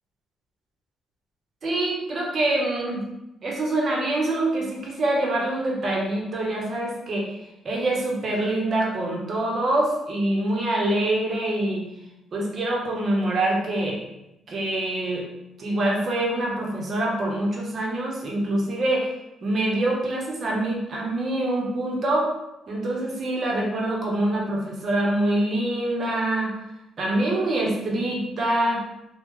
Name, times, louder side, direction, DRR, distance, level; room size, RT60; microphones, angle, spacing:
voice 1, 1.6-3.0 3.4-7.3 7.6-11.8 12.3-14.0 14.5-15.3 15.6-19.1 19.4-22.3 22.7-26.5 27.0-28.8, right 1 dB, 50° right, -2 dB, 1.0 m, -25 dB
3.1 x 2.3 x 3.7 m, 0.89 s
cardioid pair, 90°, 0 cm